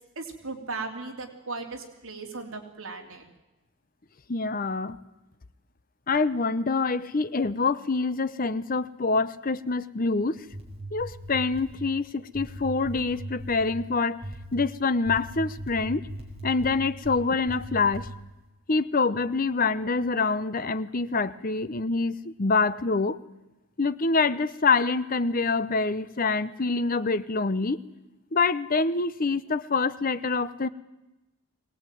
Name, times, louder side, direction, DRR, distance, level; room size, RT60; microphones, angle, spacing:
voice 1, 0.2-3.2, right 3 dB, 70° right, 2 dB, 3.4 m, -37 dB
voice 2, 4.3-5.0 6.1-10.4 10.9-14.2 14.5-16.0 16.4-18.1 18.7-23.2 23.8-27.8 28.3-30.7, left 4 dB, 40° left, 14 dB, 0.8 m, -26 dB
sound 1, 10.4-11.8 12.3-13.7 14.2-14.6 15.1-17.2 17.5-18.1, right 1 dB, 30° right, 5.1 m, -39 dB
22.0 x 18.5 x 9.2 m, 1.0 s
head